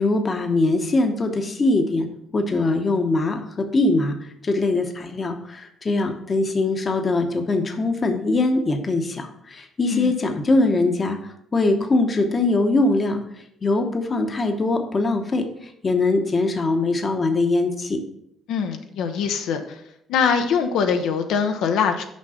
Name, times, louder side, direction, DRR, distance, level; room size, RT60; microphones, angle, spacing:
voice 1, 0.0-13.2 13.6-18.0, left 2 dB, 30° left, 5 dB, 0.9 m, -22 dB
voice 2, 18.5-19.8 20.1-22.0, left 6 dB, 80° left, 6 dB, 0.8 m, -23 dB
6.3 x 5.2 x 5.6 m, 0.77 s
cardioid pair, 120°, 0 cm